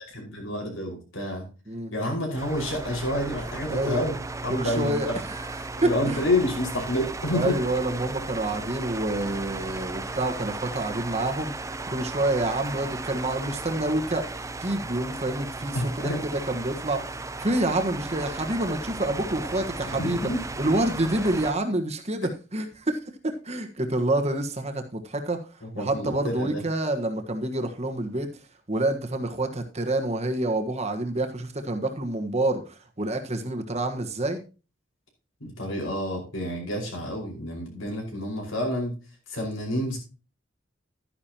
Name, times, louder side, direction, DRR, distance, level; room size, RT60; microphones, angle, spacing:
voice 1, 0.1-1.5 1.9-4.2 4.4-5.2 5.5-7.6 15.7-16.2 19.9-20.4 25.6-26.6 35.4-38.9 39.3-40.0, left 1 dB, 85° left, 0 dB, 5.2 m, -29 dB
sound 1, 2.4-21.5, right 3 dB, 15° right, 0.6 m, -36 dB
voice 2, 3.7-4.0 4.5-5.1 5.8-6.2 7.3-11.5 11.9-14.2 14.6-16.1 16.5-17.0 17.4-20.3 20.6-23.0 23.2-25.4 25.7-28.3 28.7-32.6 33.0-34.4, right 1 dB, 35° right, 6 dB, 1.4 m, -27 dB
12.0 x 10.0 x 2.9 m, 0.33 s
head